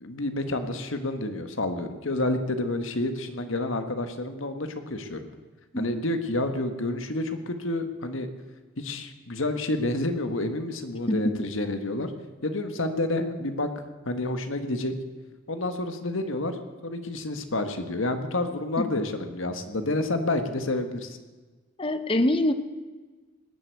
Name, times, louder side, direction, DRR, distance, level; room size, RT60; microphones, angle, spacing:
voice 1, 0.0-5.3 5.8-8.3 8.8-12.1 12.4-13.7 14.0-14.9 15.5-16.6 16.8-21.2, left 2 dB, 70° left, 8 dB, 1.5 m, -29 dB
voice 2, 5.7-6.0 11.1-11.4 18.8-19.0 21.8-22.5, left 1 dB, 25° left, 11 dB, 0.8 m, -25 dB
18.5 x 8.2 x 8.2 m, 1.3 s
head